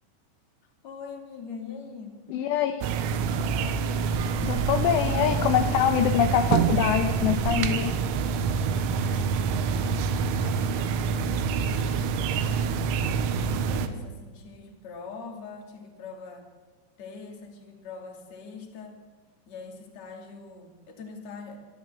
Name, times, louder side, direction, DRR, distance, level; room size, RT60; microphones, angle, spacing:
voice 1, 0.8-2.2 4.5-5.1 8.9-10.1 10.4-12.8 13.4-16.5 17.0-19.0 19.5-21.6, left 5 dB, 40° left, 3 dB, 3.2 m, -43 dB
voice 2, 2.3-2.8 4.4-7.9, left 10 dB, 75° left, 7 dB, 2.8 m, -24 dB
sound 1, 2.8-13.9, right 6 dB, 90° right, 3.9 m, -26 dB
28.0 x 12.5 x 8.3 m, 1.5 s
omnidirectional pair, 5.8 m